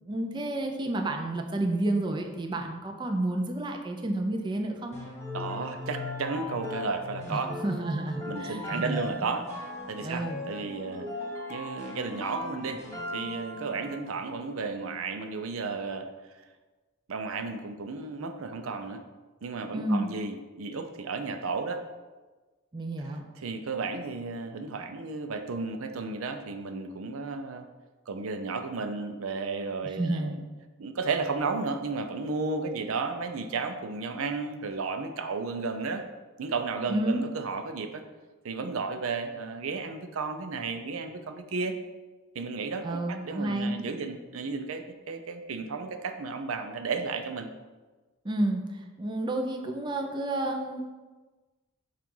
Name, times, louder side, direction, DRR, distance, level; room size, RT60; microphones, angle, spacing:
voice 1, 0.0-5.0 7.3-9.1 10.0-10.4 19.7-20.1 22.7-23.2 29.8-30.4 36.9-37.2 42.8-43.7 48.2-50.8, right 1 dB, 20° right, 2 dB, 0.5 m, -30 dB
sound 1, 4.9-14.1, left 2 dB, 15° left, 1.5 m, -38 dB
voice 2, 5.3-7.5 8.3-9.5 9.9-11.1 11.5-12.8 13.1-16.1 17.1-19.0 19.4-21.8 23.4-27.7 28.1-30.4 30.8-36.0 36.4-38.0 38.4-41.7 42.3-47.5, right 4 dB, 80° right, 7 dB, 0.5 m, -33 dB
7.3 x 2.5 x 5.4 m, 1.3 s
head